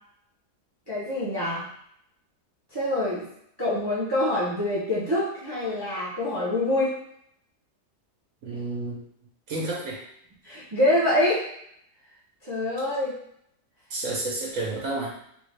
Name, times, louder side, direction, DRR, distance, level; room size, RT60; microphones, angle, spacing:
voice 1, 0.9-1.6 2.7-3.2 3.6-6.9 10.4-11.4 12.4-13.2, left 1 dB, 25° right, -7 dB, 0.6 m, -25 dB
voice 2, 8.4-9.0 9.5-10.0 13.9-15.1, right 2 dB, 60° right, -4 dB, 1.1 m, -30 dB
3.5 x 2.5 x 3.2 m, 0.72 s
omnidirectional pair, 1.7 m